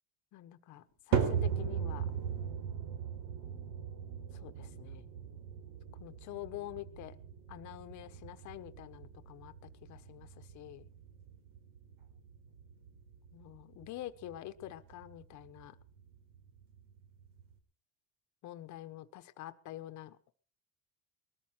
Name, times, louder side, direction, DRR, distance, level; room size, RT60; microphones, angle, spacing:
voice 1, 0.3-2.1 4.3-5.0 6.0-7.2 7.5-9.5 9.8-10.9 13.3-15.8 18.4-20.3, left 14 dB, 55° left, 9 dB, 1.3 m, -47 dB
sound 1, 1.1-17.6, right 7 dB, 70° right, 3.8 m, -39 dB
20.5 x 14.0 x 4.6 m, 0.38 s
cardioid pair, 135°, 35 cm